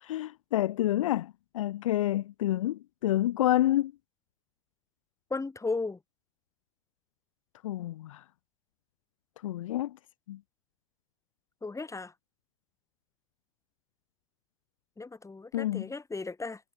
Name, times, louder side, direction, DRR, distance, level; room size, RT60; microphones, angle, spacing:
voice 1, 0.0-3.9 7.6-8.2 9.4-9.9 10.3-10.4 15.5-15.9, left 14 dB, 75° left, 0.6 m, -28 dB
voice 2, 5.3-6.0 11.6-12.1 15.0-16.6, left 3 dB, 20° left, 5.7 m, -35 dB
figure-of-eight pair, 60°, 17 cm